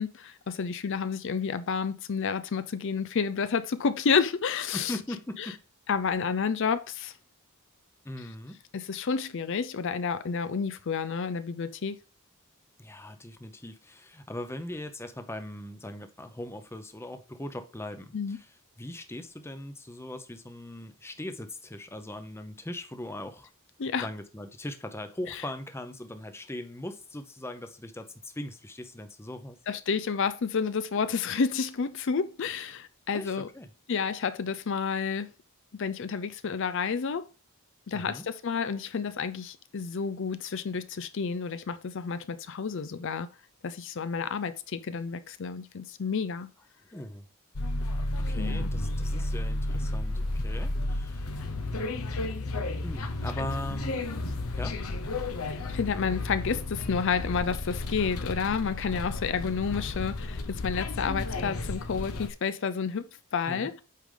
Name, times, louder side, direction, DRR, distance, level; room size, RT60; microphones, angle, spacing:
voice 1, 0.0-4.9 5.4-5.5 5.9-7.1 8.7-12.0 18.1-18.4 23.8-24.1 25.3-25.4 29.7-33.5 33.9-35.3 35.7-37.3 37.9-43.3 43.6-46.5 48.4-48.7 53.4-53.5 55.5-63.7, left 5 dB, 60° left, 0.5 m, -30 dB
voice 2, 4.7-5.6 8.0-8.6 12.8-18.5 18.8-23.5 24.0-29.6 33.1-33.7 37.9-38.2 46.9-47.2 48.2-51.3 52.8-54.0 54.6-54.8 63.5-63.7, left 1 dB, 10° left, 0.7 m, -40 dB
sound 1, 47.6-62.3, left 2 dB, 85° left, 1.0 m, -32 dB
8.3 x 5.0 x 3.8 m
head